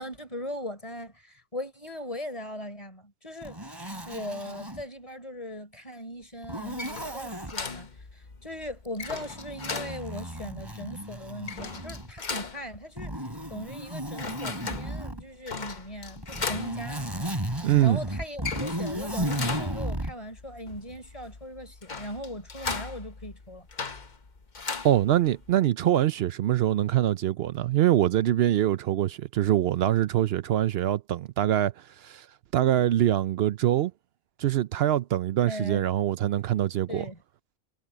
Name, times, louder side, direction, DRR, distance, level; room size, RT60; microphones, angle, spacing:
voice 1, 0.0-3.6 4.1-7.9 8.4-13.2 13.5-17.1 17.8-23.7 35.4-35.9 36.9-37.2, left 1 dB, 30° left, 4.0 m, -39 dB
Zipper (clothing), 3.4-4.8 6.4-7.5 8.9-12.2 13.0-15.2 16.2-20.1, right 1 dB, 25° right, 3.2 m, -34 dB
door wood int old squeaky handle turn metal creak various, 6.6-25.5, left 4 dB, 45° left, 1.3 m, -38 dB
voice 2, 17.6-18.0 24.8-31.7 32.0-32.3 32.5-33.9 34.4-37.1, right 12 dB, 75° right, 0.8 m, -24 dB
omnidirectional pair, 1.1 m